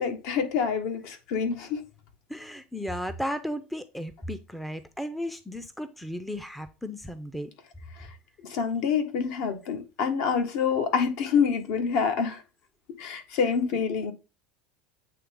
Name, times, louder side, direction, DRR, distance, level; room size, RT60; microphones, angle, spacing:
voice 1, 0.0-1.8 8.4-12.4 13.0-14.1, left 6 dB, 65° left, 1.6 m, -27 dB
voice 2, 2.3-7.5 13.7-13.8, equal, ahead, 0.5 m, -35 dB
8.4 x 3.3 x 3.7 m
supercardioid pair, 130°, 5 cm